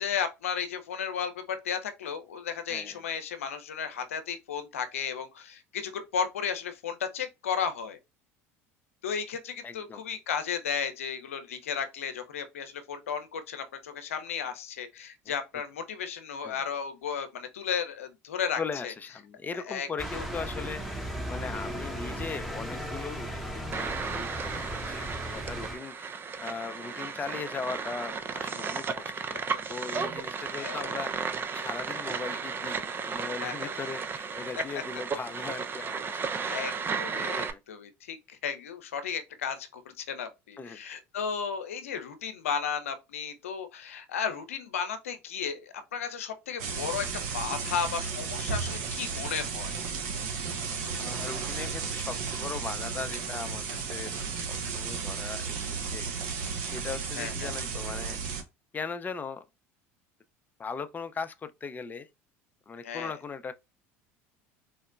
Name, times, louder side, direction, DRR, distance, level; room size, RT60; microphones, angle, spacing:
voice 1, 0.0-8.0 9.0-18.9 19.7-19.9 20.1-20.2 30.5-31.0 33.4-33.7 36.4-47.1 47.3-49.8 57.2-57.5 62.8-63.1, left 7 dB, 85° left, 0.6 m, -34 dB
voice 2, 2.7-3.0 9.6-10.0 16.4-16.6 18.6-20.8 21.3-24.6 24.9-36.8 37.4-37.6 40.6-40.8 51.0-56.1 56.6-58.2 58.7-59.4 60.6-62.1 62.7-63.5, left 5 dB, 25° left, 0.5 m, -39 dB
sound 1, 20.0-25.8, equal, ahead, 0.8 m, -36 dB
sound 2, 23.7-37.5, right 5 dB, 30° right, 0.5 m, -34 dB
sound 3, 46.6-58.4, right 5 dB, 70° right, 0.8 m, -34 dB
3.8 x 2.1 x 2.4 m
hypercardioid pair, 75°, 7 cm